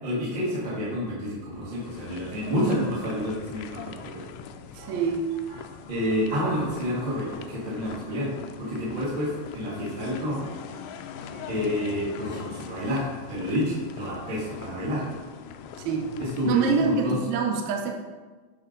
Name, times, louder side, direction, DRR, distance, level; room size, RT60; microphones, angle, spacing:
voice 1, 0.0-4.2 5.9-10.5 11.5-15.0 16.2-17.2, equal, 40° right, -9 dB, 2.5 m, -29 dB
sound 1, 1.8-17.0, left 7 dB, 80° left, 1.9 m, -42 dB
voice 2, 4.7-5.7 10.7-11.5 15.8-16.2 16.5-17.9, right 5 dB, 75° right, 2 dB, 1.7 m, -27 dB
10.0 x 3.5 x 5.2 m, 1.3 s
omnidirectional pair, 3.9 m